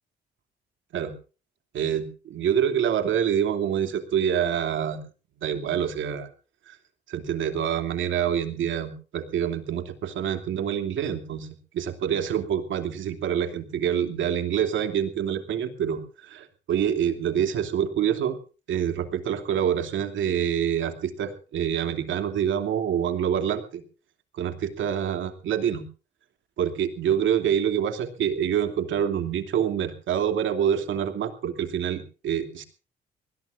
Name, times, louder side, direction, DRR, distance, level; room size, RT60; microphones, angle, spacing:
voice 1, 1.7-5.0 5.4-6.3 6.7-6.8 7.1-11.5 11.7-18.4 18.7-23.8 24.3-25.9 26.6-32.6, right 9 dB, 75° right, 7 dB, 2.9 m, -26 dB
23.0 x 19.5 x 2.6 m, 0.35 s
cardioid pair, 90°, 20 cm